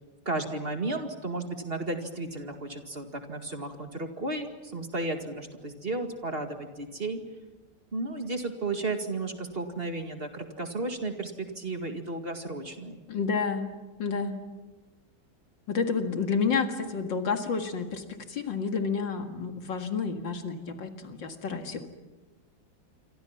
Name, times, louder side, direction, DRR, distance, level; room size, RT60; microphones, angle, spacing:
voice 1, 0.3-7.2 7.9-13.0, right 2 dB, 30° right, 5 dB, 2.3 m, -33 dB
voice 2, 13.1-13.7 14.0-14.4 15.7-21.9, left 5 dB, 85° left, 5 dB, 2.7 m, -30 dB
28.0 x 24.5 x 5.9 m, 1.2 s
omnidirectional pair, 2.0 m